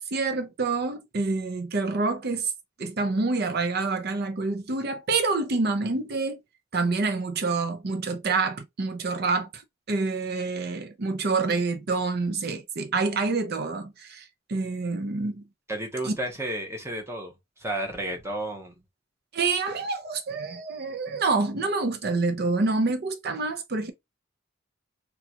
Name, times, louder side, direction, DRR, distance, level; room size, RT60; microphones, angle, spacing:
voice 1, 0.0-2.5 2.8-6.4 6.7-9.6 9.9-15.4 16.0-16.2 19.3-23.9, right 3 dB, 50° right, 0.6 m, -27 dB
voice 2, 15.7-17.3 17.6-18.7, right 1 dB, 15° right, 0.9 m, -32 dB
3.8 x 2.4 x 2.8 m
head